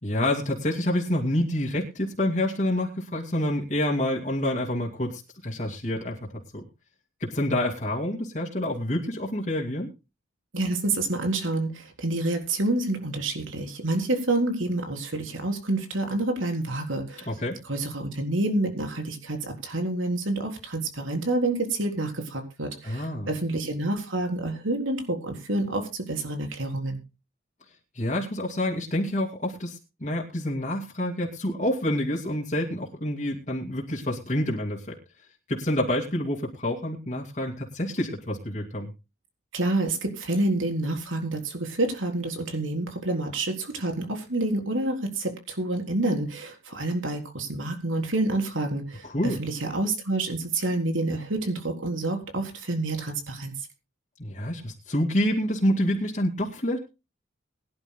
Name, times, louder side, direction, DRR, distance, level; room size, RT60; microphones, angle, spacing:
voice 1, 0.0-6.2 6.5-6.6 7.2-9.9 17.3-17.6 22.8-23.3 27.9-35.0 35.5-38.9 49.0-49.4 54.2-56.8, left 1 dB, 40° left, -2 dB, 2.5 m, -27 dB
voice 2, 10.5-17.3 17.6-27.0 39.5-53.5, right 2 dB, 90° right, 3 dB, 3.9 m, -28 dB
22.5 x 11.5 x 2.2 m, 0.29 s
head